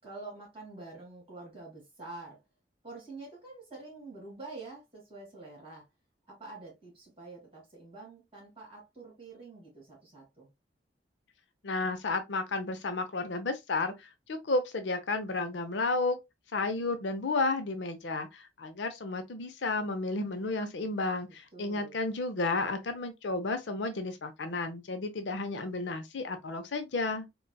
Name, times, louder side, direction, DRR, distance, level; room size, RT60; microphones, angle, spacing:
voice 1, 0.0-2.4 2.8-5.8 6.3-10.5 21.5-22.0, right 3 dB, 30° right, 1.9 m, -47 dB
voice 2, 11.6-16.2 16.5-27.3, left 3 dB, 75° left, 0.6 m, -32 dB
3.9 x 2.3 x 2.2 m
head